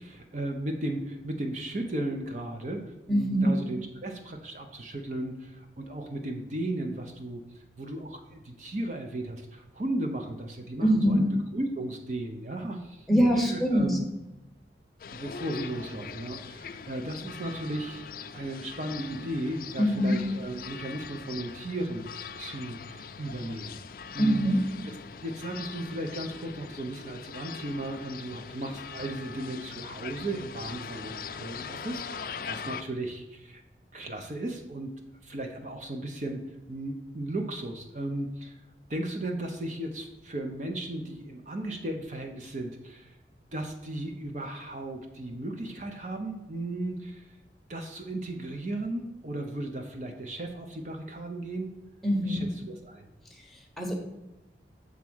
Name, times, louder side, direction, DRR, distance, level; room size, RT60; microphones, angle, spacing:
voice 1, 0.0-11.3 11.5-14.0 15.1-23.8 24.1-24.4 24.9-25.0 25.2-33.6 33.9-34.9 35.2-38.6 38.9-43.2 43.5-47.4 47.7-51.8 52.2-53.1, right 1 dB, 40° right, 4 dB, 0.6 m, -35 dB
voice 2, 3.1-3.6 10.8-11.3 13.1-14.0 19.8-20.2 24.2-24.6 52.0-52.4 53.3-54.0, equal, ahead, 0 dB, 1.0 m, -24 dB
sound 1, 15.0-32.8, left 6 dB, 50° left, 0.4 m, -41 dB
7.3 x 3.5 x 6.0 m, 1.0 s
head